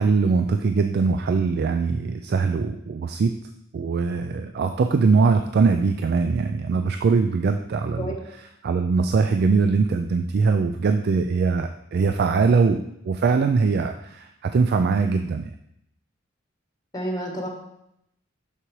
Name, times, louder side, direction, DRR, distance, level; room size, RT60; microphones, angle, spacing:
voice 1, 0.0-3.3 3.7-8.1 8.6-15.5, right 4 dB, 55° right, 7 dB, 0.3 m, -22 dB
voice 2, 16.9-17.5, equal, 20° left, 0 dB, 1.1 m, -29 dB
6.6 x 6.0 x 3.1 m, 0.77 s
head